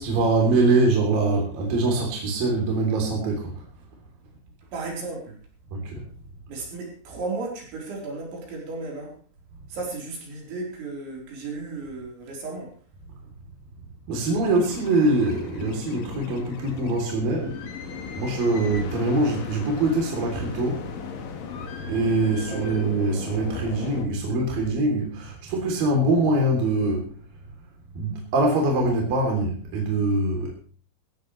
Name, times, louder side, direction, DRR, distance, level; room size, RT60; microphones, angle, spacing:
voice 1, 0.0-3.6 5.7-6.1 14.1-17.6 18.2-20.9 21.8-27.1 27.9-30.5, right 2 dB, 50° right, -1 dB, 4.9 m, -23 dB
voice 2, 4.7-5.4 6.5-9.2 9.7-12.7 22.5-22.8, right 3 dB, 65° right, -1 dB, 6.4 m, -34 dB
sound 1, 14.4-24.1, left 6 dB, 55° left, 2.8 m, -37 dB
17.5 x 16.0 x 3.3 m, 0.41 s
omnidirectional pair, 5.8 m